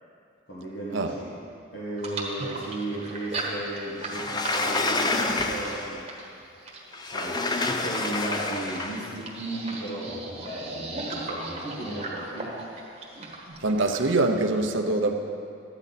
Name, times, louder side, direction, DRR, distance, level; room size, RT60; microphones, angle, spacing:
voice 1, 0.5-1.3 1.7-6.1 7.0-12.6, right 1 dB, 60° left, -7 dB, 1.6 m, -35 dB
sound 1, 2.0-14.1, right 2 dB, 30° right, 1.2 m, -37 dB
Sliding door, 4.1-6.0 6.9-9.1, left 3 dB, 20° left, 0.4 m, -28 dB
voice 2, 13.6-15.1, right 2 dB, 75° right, 3 dB, 0.7 m, -24 dB
12.0 x 8.8 x 4.1 m, 2.5 s
head